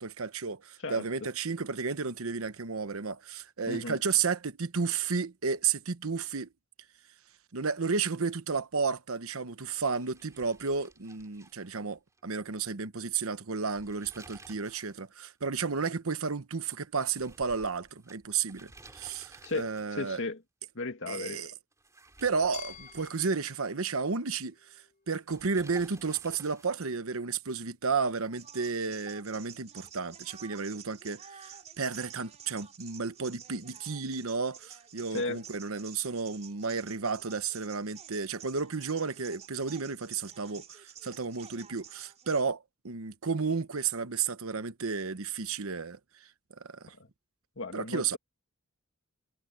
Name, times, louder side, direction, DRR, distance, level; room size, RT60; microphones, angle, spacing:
voice 1, 0.0-6.5 7.5-20.2 21.1-21.5 22.2-24.5 25.1-46.0 46.6-46.9 47.7-48.2, right 5 dB, 75° right, 1.0 m, -32 dB
voice 2, 3.7-4.0 19.4-20.4 20.7-21.5 35.1-35.4 47.0-47.1 47.6-48.2, left 2 dB, 60° left, 2.3 m, -35 dB
sound 1, 9.7-12.2 12.5-12.6 13.6-15.0 15.3-15.4 17.0-20.1 21.7-23.7 25.3-27.0, right 2 dB, 15° right, 2.9 m, -55 dB
Glass, 22.5-25.4, left 11 dB, 40° left, 4.6 m, -51 dB
sound 2, 28.3-42.4, right 8 dB, 35° right, 4.7 m, -51 dB
head